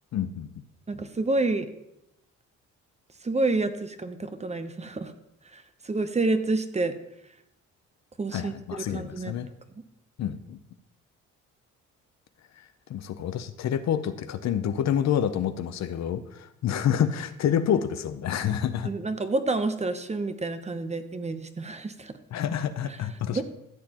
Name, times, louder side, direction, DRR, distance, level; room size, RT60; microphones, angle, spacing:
voice 1, 0.1-0.6 8.3-9.5 10.2-10.6 12.6-12.7 12.9-18.9 22.3-23.4, left 9 dB, 60° left, 11 dB, 0.7 m, -28 dB
voice 2, 0.9-1.7 3.2-5.1 5.5-7.0 8.2-9.3 18.8-22.2 23.3-23.4, right 2 dB, 20° right, 9 dB, 0.8 m, -28 dB
14.0 x 7.5 x 2.9 m, 0.85 s
cardioid pair, 90°, 30 cm